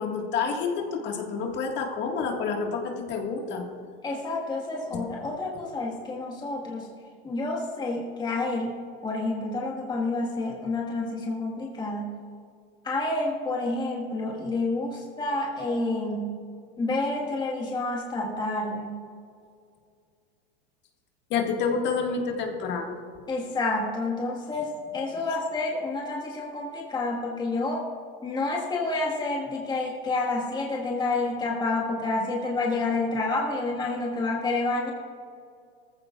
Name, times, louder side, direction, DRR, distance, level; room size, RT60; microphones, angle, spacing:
voice 1, 0.0-3.7 4.9-5.0 21.3-23.0, left 5 dB, 35° left, 2 dB, 1.8 m, -28 dB
voice 2, 4.0-6.9 7.2-8.7 9.0-12.2 12.8-16.4 16.8-19.0 23.3-27.8 28.2-34.9, left 2 dB, 15° left, -2 dB, 1.6 m, -29 dB
18.5 x 15.0 x 2.4 m, 2.3 s
supercardioid pair, 135°, 30 cm